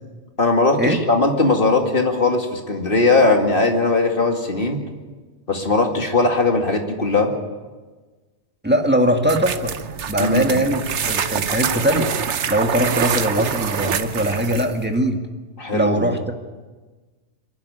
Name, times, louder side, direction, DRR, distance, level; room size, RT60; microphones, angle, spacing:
voice 1, 0.4-4.8 5.5-7.3 10.2-10.6 15.6-16.1, left 3 dB, 50° left, 3 dB, 2.5 m, -19 dB
voice 2, 8.6-9.7 10.1-12.1 12.5-15.2 15.7-16.3, right 1 dB, 10° right, 3 dB, 1.8 m, -21 dB
sound 1, 9.2-14.8, right 7 dB, 75° right, 1.2 m, -25 dB
24.0 x 11.5 x 10.0 m, 1.3 s
omnidirectional pair, 1.2 m